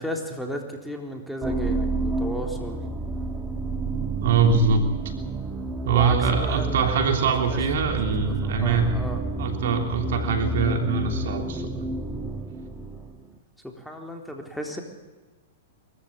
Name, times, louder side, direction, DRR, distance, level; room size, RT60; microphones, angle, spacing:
voice 1, 0.0-2.8 5.9-9.2 13.6-14.8, equal, ahead, 2 dB, 3.8 m, -35 dB
sound 1, 1.4-13.3, right 2 dB, 15° right, 2.4 m, -29 dB
voice 2, 4.2-4.9 5.8-9.0 9.4-11.8, right 5 dB, 65° right, 5 dB, 3.3 m, -23 dB
24.0 x 14.5 x 8.7 m, 1.2 s
hypercardioid pair, 115°, 0 cm